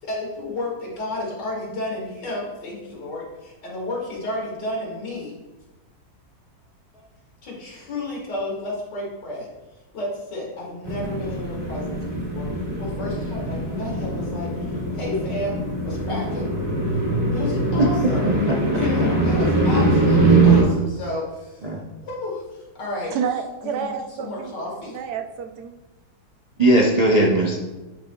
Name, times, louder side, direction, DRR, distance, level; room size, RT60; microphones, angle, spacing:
voice 1, 0.0-5.4 7.4-9.5 9.9-12.5 12.8-15.6 15.8-16.5 17.3-18.2 18.7-21.7 22.0-23.1 23.6-23.9 24.2-25.0, left 2 dB, 85° left, -4 dB, 2.7 m, -31 dB
sound 1, 10.8-20.6, right 2 dB, 15° right, 1.8 m, -22 dB
voice 2, 18.2-18.8 21.6-21.8 26.6-27.6, right 1 dB, 50° right, -3 dB, 0.5 m, -19 dB
voice 3, 23.1-24.5 24.9-25.7, right 7 dB, 75° right, 6 dB, 1.1 m, -29 dB
10.0 x 6.0 x 2.3 m, 1.1 s
omnidirectional pair, 1.8 m